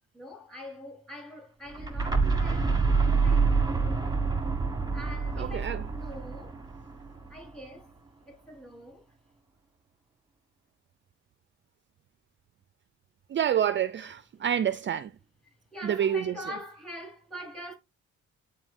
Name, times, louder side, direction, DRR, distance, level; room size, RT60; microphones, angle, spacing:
voice 1, 0.1-4.1 4.9-6.6 7.3-7.9 8.3-9.0 15.7-17.7, equal, ahead, 3.9 m, -44 dB
sound 1, 1.7-7.5, right 4 dB, 15° right, 1.2 m, -27 dB
voice 2, 5.4-5.8 13.3-15.1 15.8-16.3, right 9 dB, 40° right, 0.4 m, -28 dB
9.6 x 4.0 x 2.6 m
cardioid pair, 90°, 30 cm